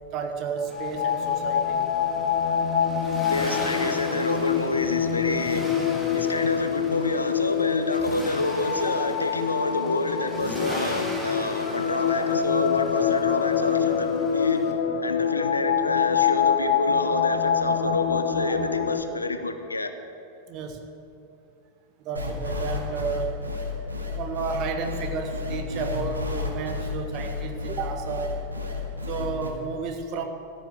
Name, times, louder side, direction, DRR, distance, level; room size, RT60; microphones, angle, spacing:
voice 1, 0.1-1.9 20.5-20.8 22.0-23.4 24.1-28.5 29.1-30.2, right 5 dB, 40° right, 6 dB, 1.3 m, -32 dB
sound 1, 0.6-19.0, left 7 dB, 55° left, 1.2 m, -25 dB
Accelerating revving vroom, 0.7-14.7, equal, 5° right, 1.9 m, -40 dB
voice 2, 3.3-5.8 6.1-14.6 15.0-19.9, left 2 dB, 80° left, 9 dB, 0.8 m, -28 dB
sound 2, 22.2-29.5, left 3 dB, 80° right, 1.7 m, -31 dB
15.0 x 6.5 x 9.1 m, 2.6 s
figure-of-eight pair, 90°, 0 cm